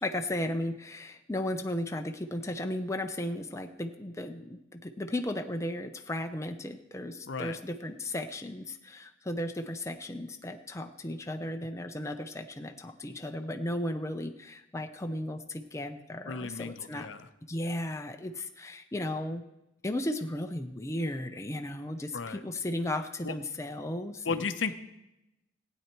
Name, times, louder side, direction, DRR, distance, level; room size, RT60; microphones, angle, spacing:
voice 1, 0.0-17.1 17.5-19.4 19.8-24.5, left 1 dB, 15° left, 5 dB, 0.6 m, -35 dB
voice 2, 7.2-7.6 16.3-17.3 22.1-22.4 23.2-23.3 24.2-24.7, left 5 dB, 70° left, 11 dB, 0.7 m, -34 dB
15.5 x 9.1 x 4.5 m, 0.90 s
head